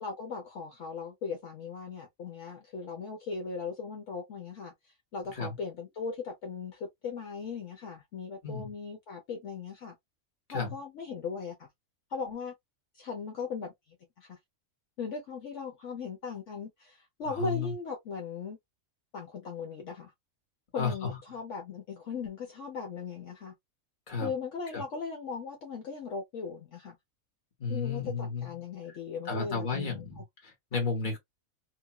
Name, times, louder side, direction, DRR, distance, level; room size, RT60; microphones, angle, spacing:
voice 1, 0.0-4.7 5.1-9.9 10.5-11.7 12.1-12.5 12.9-13.7 14.2-14.4 15.0-18.6 19.1-20.1 20.7-23.5 24.2-27.0 27.7-30.2, left 5 dB, 65° left, 1.1 m, -38 dB
voice 2, 17.3-17.7 20.8-21.2 24.1-24.3 24.7-24.8 27.6-28.6 28.9-29.0 29.2-31.2, left 4 dB, 40° left, 1.3 m, -33 dB
2.9 x 2.5 x 2.3 m
omnidirectional pair, 1.4 m